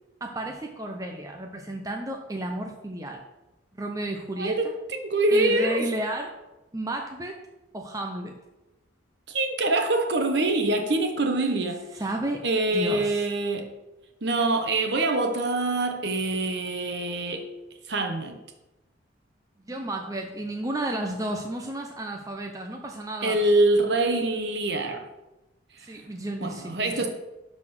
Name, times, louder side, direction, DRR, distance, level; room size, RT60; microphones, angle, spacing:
voice 1, 0.2-3.2 3.7-4.7 5.3-6.4 6.7-7.4 7.7-8.3 12.0-12.4 12.7-13.2 19.7-23.4 25.8-27.1, right 1 dB, 15° right, 0.7 m, -32 dB
voice 2, 4.4-5.8 9.3-11.8 12.4-13.7 14.2-17.5 17.9-18.4 23.2-25.0 26.4-27.1, right 2 dB, 60° right, 1.2 m, -25 dB
11.5 x 4.1 x 6.4 m
head